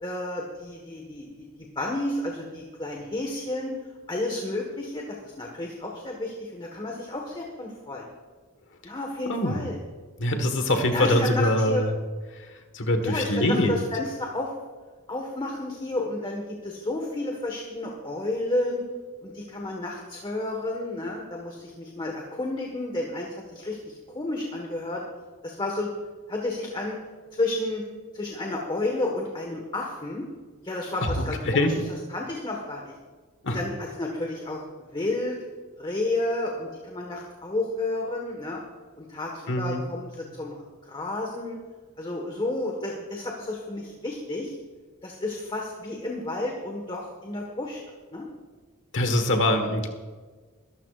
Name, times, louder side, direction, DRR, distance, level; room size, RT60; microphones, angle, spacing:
voice 1, 0.0-3.8 4.1-8.1 8.8-9.8 10.9-11.8 13.0-14.5 15.1-18.8 19.2-25.0 25.4-25.9 26.3-27.0 27.3-27.8 28.1-30.2 30.6-31.7 32.1-32.9 33.5-34.6 34.9-35.4 35.8-38.6 39.0-41.6 42.0-44.6 45.0-47.8 48.1-48.3, left 2 dB, 25° left, 0 dB, 1.5 m, -31 dB
voice 2, 9.2-9.7 10.2-11.9 12.7-13.7 31.0-31.7 33.4-33.6 39.5-39.8 48.9-49.9, left 1 dB, 60° left, 6 dB, 1.6 m, -23 dB
22.0 x 13.5 x 2.5 m, 1.4 s
head